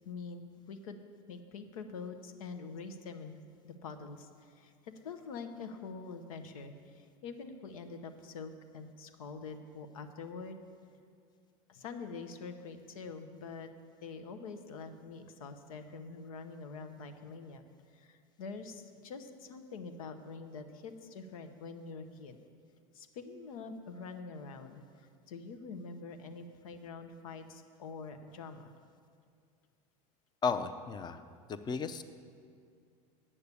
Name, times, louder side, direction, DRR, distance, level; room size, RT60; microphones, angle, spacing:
voice 1, 0.0-1.0 1.3-3.4 3.6-10.6 11.7-13.7 14.0-17.6 17.9-22.4 22.9-28.7, left 4 dB, 90° left, 8 dB, 0.8 m, -45 dB
voice 2, 30.4-32.0, left 5 dB, 25° left, 11 dB, 0.6 m, -34 dB
8.6 x 6.6 x 8.4 m, 2.3 s
supercardioid pair, 110°, 17 cm